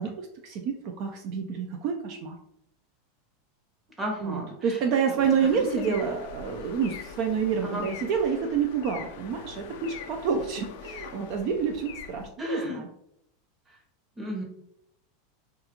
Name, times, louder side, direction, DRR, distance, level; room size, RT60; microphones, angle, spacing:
voice 1, 0.0-2.4 4.2-12.9, right 6 dB, 55° right, 3 dB, 0.3 m, -28 dB
voice 2, 4.0-4.8 5.1-5.9 7.6-7.9 12.4-12.8 13.7-13.8 14.2-14.4, equal, 15° right, 0 dB, 0.8 m, -33 dB
sound 1, 5.2-12.3, left 6 dB, 65° left, 0.3 m, -43 dB
2.4 x 2.3 x 2.9 m, 0.76 s
hypercardioid pair, 115°, 0 cm